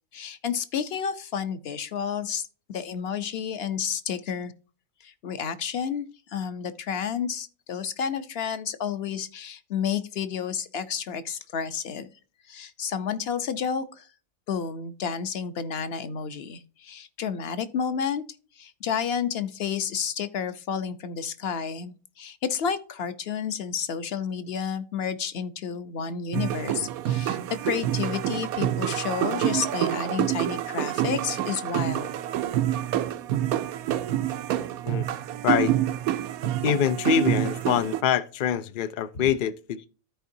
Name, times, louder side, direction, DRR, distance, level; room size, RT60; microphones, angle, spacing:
voice 1, 0.1-4.5 5.0-12.1 12.5-14.1 14.5-18.2 18.6-32.1, left 7 dB, 55° left, 0.8 m, -31 dB
sound 1, 26.3-38.0, right 12 dB, 85° right, 1.1 m, -27 dB
voice 2, 36.6-39.9, left 8 dB, 75° left, 0.4 m, -25 dB
13.5 x 4.6 x 2.6 m
omnidirectional pair, 1.5 m